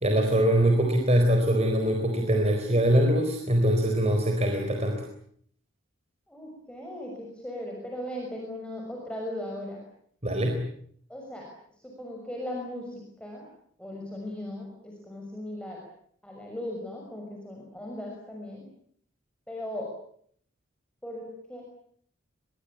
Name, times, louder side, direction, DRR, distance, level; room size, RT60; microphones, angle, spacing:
voice 1, 0.0-5.0 10.2-10.6, right 1 dB, 35° right, 3 dB, 4.3 m, -23 dB
voice 2, 6.3-9.8 11.1-11.5 11.8-13.4 13.8-15.9 16.2-18.7 19.5-19.9 21.0-21.6, left 1 dB, 5° left, -1 dB, 6.4 m, -38 dB
25.5 x 23.0 x 8.7 m, 0.64 s
head